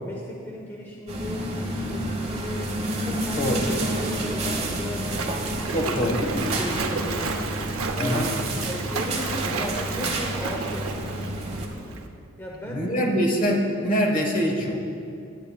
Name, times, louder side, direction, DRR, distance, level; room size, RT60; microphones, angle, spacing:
voice 1, 0.0-1.5 1.9-2.8 3.0-5.1 5.8-7.4 7.9-10.9 12.4-13.1, left 1 dB, 10° left, -2 dB, 0.7 m, -35 dB
sound 1, 1.1-11.7, right 1 dB, 30° right, 1.1 m, -30 dB
Splash splatter, 4.2-12.1, right 4 dB, 75° right, 0.7 m, -32 dB
voice 2, 5.7-6.2 8.0-8.3 12.6-14.8, equal, 40° left, 1 dB, 1.3 m, -24 dB
17.0 x 8.8 x 2.3 m, 2.6 s
head